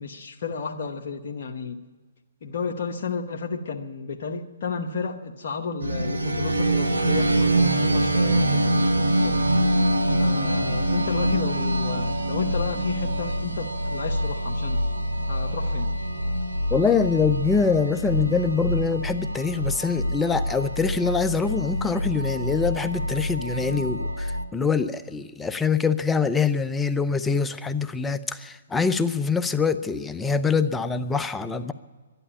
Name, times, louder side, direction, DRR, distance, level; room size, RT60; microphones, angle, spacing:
voice 1, 0.0-1.8 2.4-8.9 9.2-9.4 10.2-14.8 15.3-15.9, left 5 dB, 60° left, 2 dB, 1.0 m, -32 dB
sound 1, 5.8-24.4, right 1 dB, 90° right, 1.3 m, -25 dB
voice 2, 16.7-31.7, left 5 dB, 10° left, 11 dB, 0.6 m, -24 dB
12.5 x 11.0 x 10.0 m, 1.4 s
hypercardioid pair, 135°, 0 cm